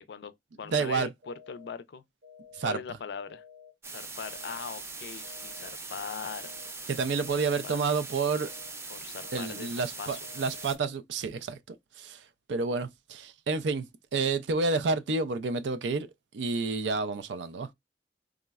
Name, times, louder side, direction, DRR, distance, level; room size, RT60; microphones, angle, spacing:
voice 1, 0.0-2.0 2.6-3.4 3.9-6.5 7.6-7.8 8.9-10.2, left 6 dB, 70° left, 0.4 m, -40 dB
voice 2, 0.7-1.1 2.5-2.8 6.9-8.5 9.3-11.6 12.0-13.9 14.1-16.1 16.3-17.7, right 4 dB, 90° right, 0.4 m, -29 dB
sound 1, 1.2-1.7 2.2-2.7 3.2-3.7 4.2-4.7 5.2-5.7 6.2-6.7 7.2-7.7 8.2-8.7 9.2-9.7 10.2-10.7, left 7 dB, 65° right, 0.8 m, -52 dB
sound 2, 3.8-10.8, right 3 dB, 15° right, 0.3 m, -41 dB
3.6 x 2.0 x 2.3 m
head